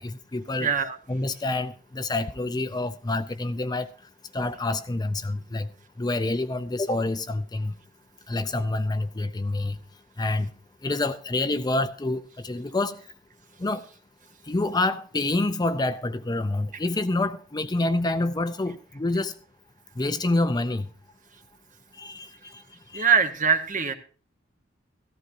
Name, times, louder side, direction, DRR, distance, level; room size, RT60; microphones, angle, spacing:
voice 1, 0.0-0.7 1.1-3.9 4.3-5.7 6.0-7.7 8.3-9.8 10.2-10.5 10.8-13.0 13.6-13.8 14.5-19.3 20.0-20.9 22.0-22.6 22.9-23.1, left 2 dB, 20° left, 0.5 m, -27 dB
voice 2, 0.6-1.0 22.9-23.9, right 6 dB, 40° right, 1.2 m, -22 dB
15.0 x 14.5 x 2.7 m
head